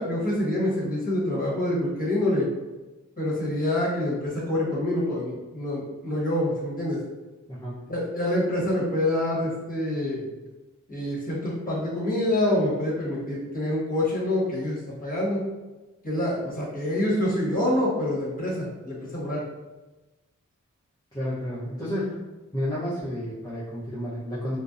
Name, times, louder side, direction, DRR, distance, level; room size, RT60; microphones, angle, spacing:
voice 1, 0.0-2.5 3.2-7.0 7.9-10.2 10.9-15.4 16.0-19.4, left 1 dB, 25° left, -7 dB, 1.1 m, -26 dB
voice 2, 7.5-7.8 21.1-24.6, equal, 10° left, -11 dB, 0.7 m, -31 dB
2.5 x 2.0 x 2.4 m, 1.1 s
cardioid pair, 40°, 31 cm